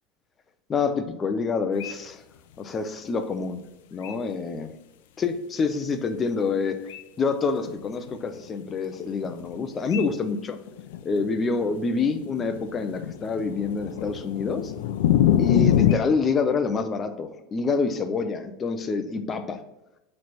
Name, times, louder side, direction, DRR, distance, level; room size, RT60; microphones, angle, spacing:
voice 1, 0.7-2.2 2.6-3.6 3.9-4.7 5.2-6.8 7.2-10.6 11.0-14.7 15.4-19.6, left 4 dB, 20° left, 8 dB, 0.5 m, -27 dB
sound 1, 1.8-1.9 3.4-3.5 4.0-4.1 6.9-7.0 7.7-8.2 8.7-8.8 9.2-9.5 9.9-10.0 10.3-10.4 10.7-16.0, left 11 dB, 85° left, 0.5 m, -24 dB
8.8 x 3.2 x 4.1 m, 0.92 s
supercardioid pair, 175°, 0 cm